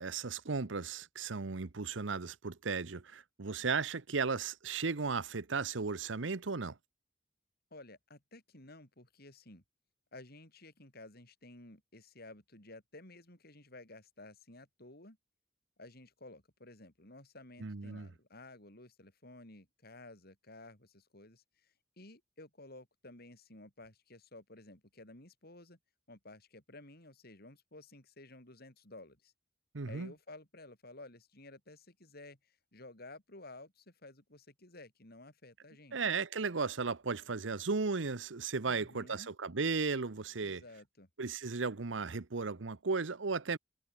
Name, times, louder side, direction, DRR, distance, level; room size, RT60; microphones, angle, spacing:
voice 1, 0.0-6.8 17.6-18.1 29.7-30.1 35.9-40.6 41.2-43.6, right 4 dB, 85° right, 0.9 m, -35 dB
voice 2, 7.7-9.6 10.1-15.2 15.8-25.8 26.1-29.3 29.8-36.0 38.7-39.3 40.4-41.1, left 2 dB, 55° left, 6.3 m, -54 dB
head